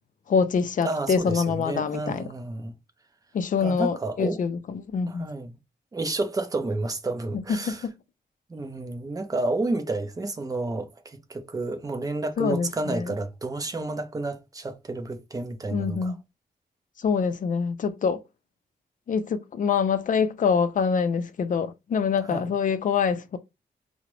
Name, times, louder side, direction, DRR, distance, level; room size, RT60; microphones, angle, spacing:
voice 1, 0.3-2.2 3.3-5.3 7.5-7.9 12.4-13.1 15.7-16.2 17.0-18.2 19.1-23.4, left 6 dB, 50° left, 0.4 m, -25 dB
voice 2, 0.8-2.7 3.6-4.4 5.1-5.6 5.9-7.9 8.5-16.2 22.2-22.5, right 2 dB, 20° right, 0.5 m, -30 dB
4.8 x 2.0 x 3.0 m
wide cardioid pair, 165°, 17 cm